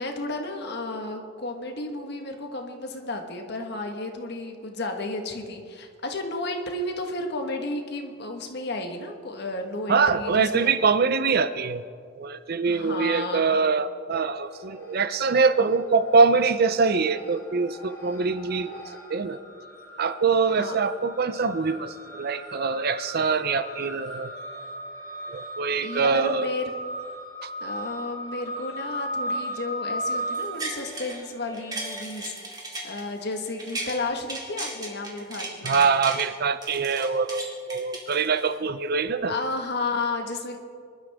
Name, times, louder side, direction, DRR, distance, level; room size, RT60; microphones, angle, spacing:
voice 1, 0.0-10.8 12.6-13.6 20.6-20.7 25.6-26.7 27.6-35.8 39.3-40.6, left 2 dB, 60° left, 3 dB, 1.5 m, -32 dB
voice 2, 9.9-11.8 12.2-19.4 20.0-24.3 25.3-26.5 27.4-27.5 35.6-39.3, right 4 dB, 55° right, 12 dB, 0.6 m, -24 dB
sound 1, 14.5-15.1 15.4-32.0, equal, 15° left, 4.1 m, -37 dB
sound 2, 30.3-31.2 31.5-34.0 34.3-36.3 36.6-38.6 39.1-39.2, right 2 dB, 20° right, 2.4 m, -36 dB
24.5 x 12.0 x 3.6 m, 2.2 s
head